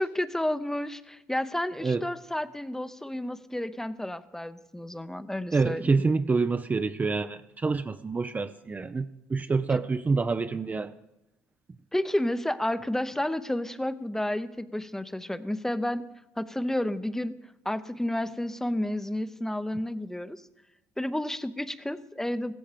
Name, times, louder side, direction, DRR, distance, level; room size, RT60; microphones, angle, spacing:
voice 1, 0.0-6.0 11.9-16.1 16.4-17.4 17.6-20.4 21.0-22.5, left 1 dB, 5° left, 13 dB, 0.8 m, -31 dB
voice 2, 5.5-10.9, right 4 dB, 25° right, 10 dB, 0.5 m, -27 dB
15.5 x 14.0 x 5.1 m, 0.90 s
supercardioid pair, 70°, 7 cm